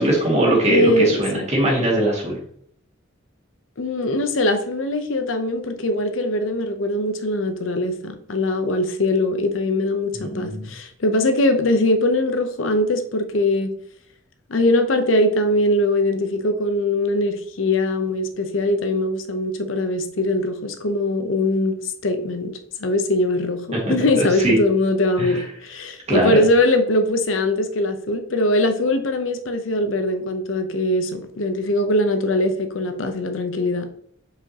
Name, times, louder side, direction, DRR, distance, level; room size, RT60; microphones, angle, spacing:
voice 1, 0.0-2.4 10.2-10.7 23.7-24.5 25.2-25.4 26.1-26.4, right 1 dB, 35° right, 2.2 m, -21 dB
voice 2, 0.7-1.4 3.8-13.7 14.5-22.5 22.8-33.9, left 1 dB, 85° left, 0.8 m, -21 dB
7.2 x 5.0 x 2.9 m
head